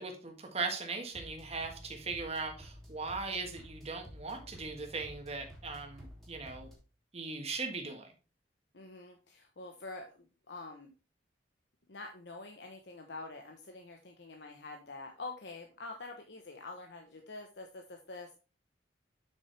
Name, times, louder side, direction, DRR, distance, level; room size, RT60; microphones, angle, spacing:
voice 1, 0.0-6.7 7.1-8.1, right 4 dB, 35° right, 4 dB, 1.5 m, -39 dB
sound 1, 1.1-6.8, equal, ahead, 2.5 m, -52 dB
voice 2, 8.7-10.9 11.9-18.4, left 3 dB, 65° left, 3 dB, 1.0 m, -46 dB
7.8 x 6.0 x 3.3 m, 0.33 s
head